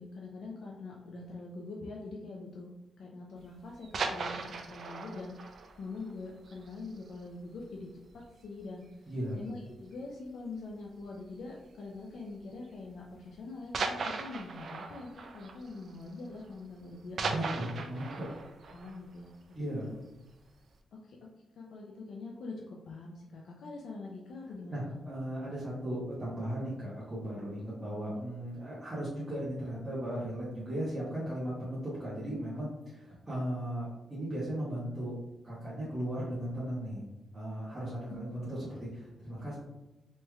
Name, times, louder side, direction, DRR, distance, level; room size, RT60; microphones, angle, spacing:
voice 1, 0.0-2.7 3.0-17.2 18.7-19.9 21.0-21.2 21.6-25.0 38.1-38.2, left 3 dB, 75° left, -1 dB, 0.4 m, -44 dB
sound 1, 3.7-7.2 7.6-7.7 8.1-8.3 8.6-8.7 9.5-9.9 11.2-11.4 12.3-12.4 13.7-16.5 16.8-19.9 20.4-20.5, right 4 dB, 55° right, 0.3 m, -38 dB
voice 2, 9.1-9.4 17.2-18.3 19.5-19.9 24.7-35.2 35.4-37.0 37.3-39.5, right 1 dB, 20° right, -9 dB, 0.9 m, -37 dB
3.1 x 3.1 x 2.3 m, 1.0 s
wide cardioid pair, 125°, 0 cm